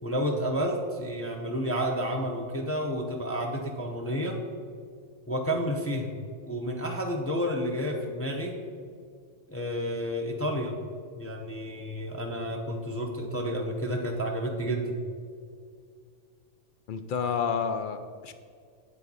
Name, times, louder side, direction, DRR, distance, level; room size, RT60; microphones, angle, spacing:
voice 1, 0.0-4.4 5.3-6.1 6.5-8.5 9.5-10.7 11.2-15.0, equal, 15° left, 1 dB, 0.5 m, -30 dB
voice 2, 16.9-18.3, left 6 dB, 60° left, 9 dB, 0.5 m, -30 dB
8.3 x 7.3 x 4.1 m, 2.2 s
omnidirectional pair, 1.3 m